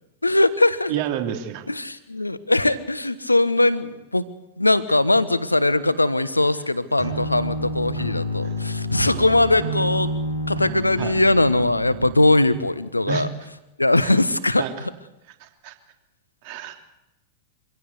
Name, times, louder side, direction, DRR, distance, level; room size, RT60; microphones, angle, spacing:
voice 1, 0.2-0.9 1.7-4.2 4.6-10.1 10.5-13.3 13.8-14.7, left 2 dB, 85° left, 15 dB, 1.2 m, -20 dB
voice 2, 0.9-1.6 8.4-8.5 9.1-9.3 11.0-11.1 13.1-13.3 14.0-14.1 14.6-14.8 15.4-15.7 16.4-16.7, right 9 dB, 45° right, 5 dB, 3.1 m, -30 dB
sound 1, 7.0-12.1, equal, 90° right, 3.7 m, -29 dB
25.0 x 16.5 x 8.2 m, 0.96 s
figure-of-eight pair, 90°, 0 cm